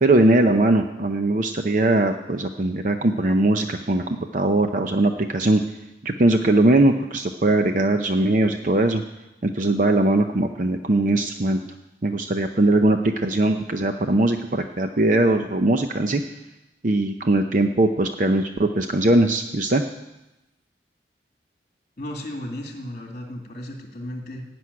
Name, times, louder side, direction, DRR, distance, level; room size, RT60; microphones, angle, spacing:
voice 1, 0.0-4.0 4.3-5.6 6.0-9.0 9.4-11.6 12.0-16.2 16.8-19.8, right 2 dB, 45° right, 6 dB, 0.6 m, -20 dB
voice 2, 22.0-24.5, left 1 dB, 40° left, 2 dB, 2.1 m, -34 dB
16.0 x 6.2 x 9.5 m, 0.97 s
head